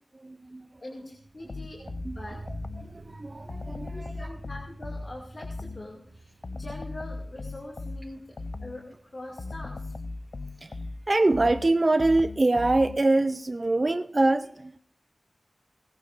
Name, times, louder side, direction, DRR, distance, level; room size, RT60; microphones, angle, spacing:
voice 1, 0.2-0.7 2.0-4.3 10.6-10.8 11.1-14.8, right 2 dB, 40° right, 0.5 m, -25 dB
voice 2, 0.8-1.8 2.1-2.4 3.9-8.8 9.1-9.9, left 1 dB, 50° left, 2.2 m, -43 dB
sound 1, 1.1-12.1 12.4-12.5, right 2 dB, 85° right, 1.6 m, -49 dB
sound 2, 1.5-3.0 3.5-6.0 6.4-8.9 9.4-13.2, left 3 dB, 75° left, 0.4 m, -38 dB
18.5 x 15.5 x 2.5 m
cardioid pair, 50°, 0 cm